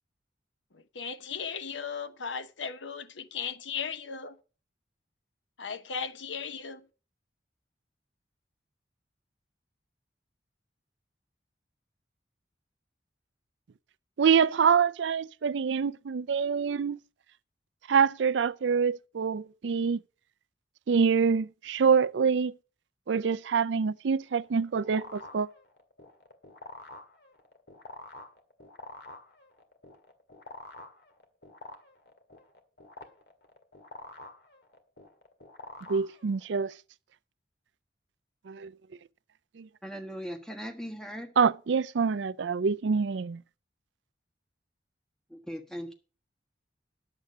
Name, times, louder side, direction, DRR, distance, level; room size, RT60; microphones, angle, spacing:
voice 1, 0.7-4.4 5.6-6.9, left 6 dB, 85° left, 0.9 m, -37 dB
voice 2, 14.2-17.0 17.9-20.0 20.9-22.5 23.1-25.5 35.9-36.7 38.5-38.7 39.6-39.7 41.4-43.4, right 6 dB, 80° right, 0.4 m, -26 dB
sound 1, 24.3-36.7, left 2 dB, 60° left, 2.0 m, -48 dB
voice 3, 39.8-41.3 45.3-45.9, equal, 5° left, 1.3 m, -39 dB
10.5 x 8.2 x 5.2 m
head